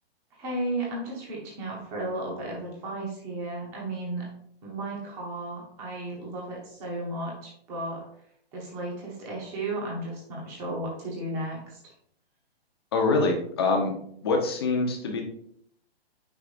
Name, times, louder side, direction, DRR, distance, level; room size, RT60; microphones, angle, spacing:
voice 1, 0.4-4.3 4.6-8.0 8.5-11.8, right 2 dB, 10° right, -3 dB, 0.9 m, -34 dB
voice 2, 12.9-13.9 14.2-15.2, left 3 dB, 25° left, 2 dB, 0.8 m, -24 dB
8.7 x 5.0 x 2.5 m, 0.68 s
hypercardioid pair, 175°, 31 cm